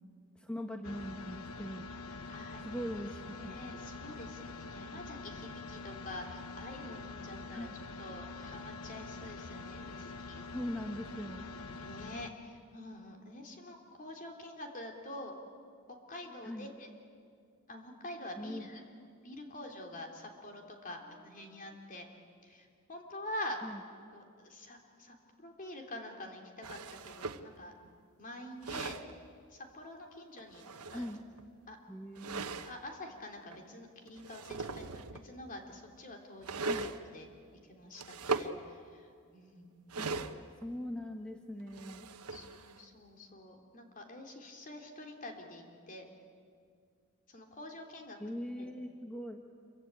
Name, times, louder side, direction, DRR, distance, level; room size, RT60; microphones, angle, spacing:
voice 1, 0.3-1.9 2.6-3.6 7.5-7.8 10.5-11.5 16.4-16.7 18.4-18.7 20.9-21.8 23.6-23.8 30.9-31.2 31.9-32.5 36.6-36.9 40.0-40.1 40.6-42.1 48.2-49.4, equal, 5° left, 3 dB, 1.2 m, -41 dB
sound 1, 0.8-12.3, left 3 dB, 70° left, 1.2 m, -45 dB
voice 2, 2.3-2.9 3.3-7.7 8.0-10.4 11.7-15.3 16.1-16.9 17.7-18.8 19.2-22.1 22.4-23.6 24.1-26.4 26.7-27.7 28.2-29.0 29.5-30.6 30.9-31.1 31.7-31.8 32.6-37.3 37.7-39.7 42.3-46.1 47.3-48.2 48.6-48.7, left 1 dB, 35° left, 3 dB, 3.3 m, -46 dB
sound 2, 26.6-27.5 28.4-29.1 30.4-31.5 32.1-32.7 33.5-33.6 34.1-35.3 36.4-37.0 37.9-38.5 39.9-40.7 41.6-42.8, right 3 dB, 80° right, 1.1 m, -39 dB
27.5 x 24.0 x 9.0 m, 2.2 s
head